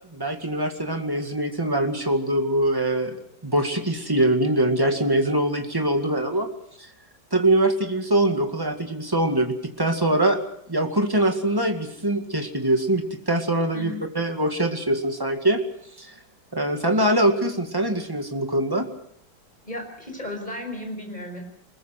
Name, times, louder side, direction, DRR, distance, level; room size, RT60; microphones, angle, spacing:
voice 1, 0.1-3.2 3.4-6.5 7.3-10.4 10.7-15.6 16.0-16.1 16.5-18.9, right 1 dB, 10° right, 4 dB, 2.0 m, -23 dB
voice 2, 19.6-21.4, left 1 dB, 20° left, 3 dB, 5.9 m, -34 dB
24.5 x 21.0 x 6.0 m, 0.71 s
omnidirectional pair, 2.0 m